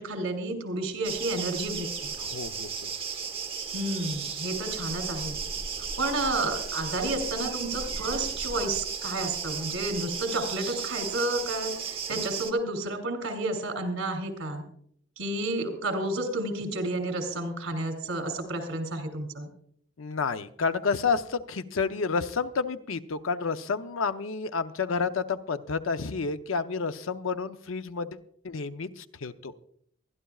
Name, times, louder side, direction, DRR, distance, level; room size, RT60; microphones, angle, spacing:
voice 1, 0.0-2.1 3.7-5.4 6.0-14.6 15.2-19.5, right 2 dB, 75° right, 6 dB, 3.1 m, -31 dB
sound 1, 1.0-12.5, right 6 dB, 30° right, 1.0 m, -35 dB
voice 2, 2.2-2.9 20.0-28.2 28.4-29.5, left 5 dB, 75° left, 10 dB, 0.7 m, -30 dB
23.5 x 11.5 x 2.4 m, 0.64 s
head